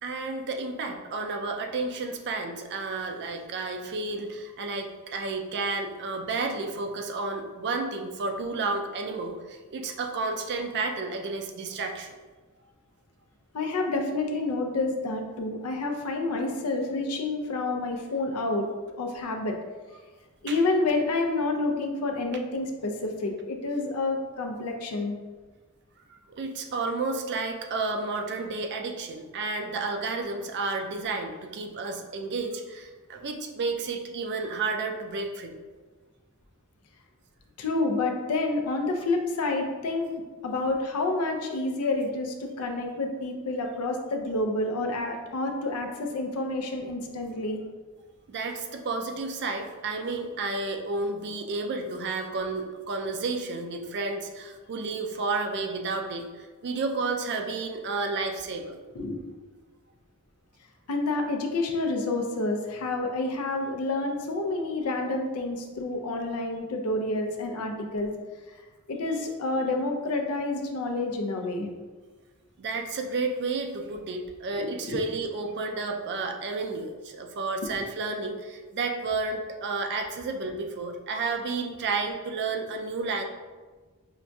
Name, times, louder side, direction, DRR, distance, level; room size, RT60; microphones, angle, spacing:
voice 1, 0.0-12.2 20.5-20.6 26.4-35.5 48.3-58.8 72.6-83.2, right 3 dB, 50° right, 4 dB, 0.4 m, -31 dB
voice 2, 13.5-18.7 19.0-19.5 20.4-25.2 37.6-40.1 40.4-47.6 58.9-59.2 60.9-68.1 68.9-71.7 74.5-75.0, left 2 dB, 85° left, 3 dB, 0.5 m, -29 dB
5.5 x 2.5 x 2.3 m, 1.3 s
head